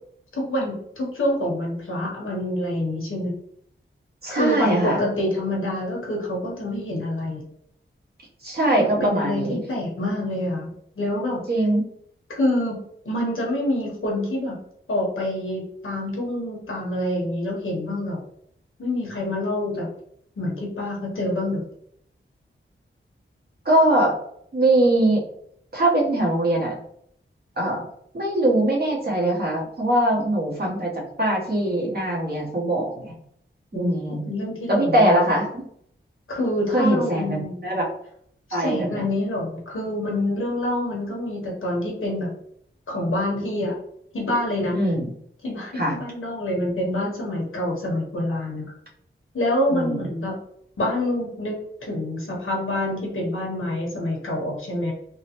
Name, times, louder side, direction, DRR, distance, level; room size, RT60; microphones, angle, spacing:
voice 1, 0.3-3.3 4.3-7.5 8.7-11.4 12.4-12.8 13.0-14.6 14.9-18.2 18.8-19.9 20.4-21.6 33.7-35.1 36.3-37.6 38.5-42.3 42.9-43.7 44.1-44.8 45.4-48.7 49.3-50.4 50.8-54.9, left 1 dB, 90° left, -2 dB, 1.2 m, -26 dB
voice 2, 4.2-5.0 8.4-9.6 11.5-11.8 23.6-24.2 24.5-25.2 25.7-26.8 27.6-27.9 28.1-33.1 33.7-34.3 34.7-35.6 36.7-37.9 38.5-39.0 44.7-45.1 45.7-45.9 49.7-50.0, right 1 dB, 50° right, -3 dB, 1.1 m, -22 dB
3.7 x 2.1 x 2.9 m, 0.68 s
wide cardioid pair, 100°, 20 cm